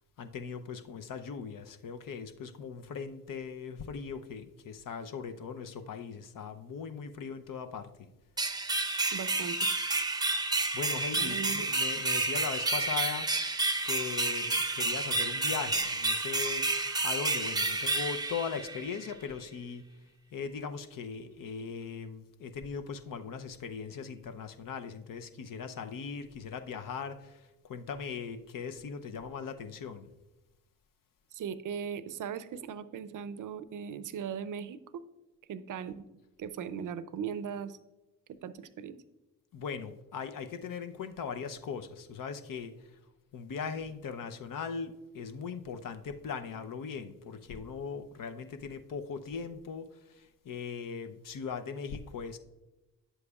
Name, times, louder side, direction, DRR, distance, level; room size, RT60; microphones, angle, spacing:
voice 1, 0.2-8.1 10.7-13.3 13.8-16.7 17.0-19.8 20.3-27.4 27.6-30.1 39.5-42.8 43.3-49.9 50.4-52.4, left 6 dB, 50° left, 0.7 m, -39 dB
sound 1, 8.4-19.1, right 2 dB, 10° right, 0.8 m, -30 dB
voice 2, 9.1-9.6 11.1-11.7 31.3-35.0 35.5-36.0 36.4-37.8 38.4-39.0, right 7 dB, 50° right, 0.6 m, -38 dB
9.9 x 7.7 x 2.4 m
hypercardioid pair, 55°, 41 cm